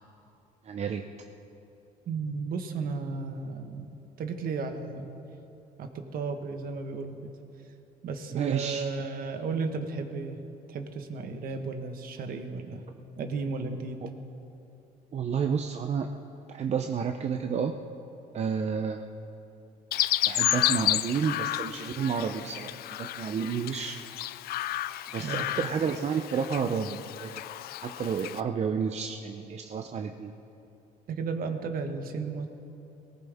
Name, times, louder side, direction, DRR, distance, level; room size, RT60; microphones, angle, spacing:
voice 1, 0.6-1.1 8.3-8.9 15.1-16.1 16.5-17.8 18.3-19.0 20.3-24.0 25.1-27.3 27.8-30.3, right 6 dB, 40° right, 5 dB, 0.7 m, -30 dB
voice 2, 2.1-5.1 5.8-7.2 8.0-10.4 10.7-12.8 13.2-14.0 25.2-25.4 31.1-32.5, right 4 dB, 60° right, 6 dB, 1.4 m, -34 dB
Chirp tweet, 19.9-28.4, left 13 dB, 65° left, 0.4 m, -31 dB
19.0 x 18.5 x 3.6 m, 2.9 s
cardioid pair, 110°, 17 cm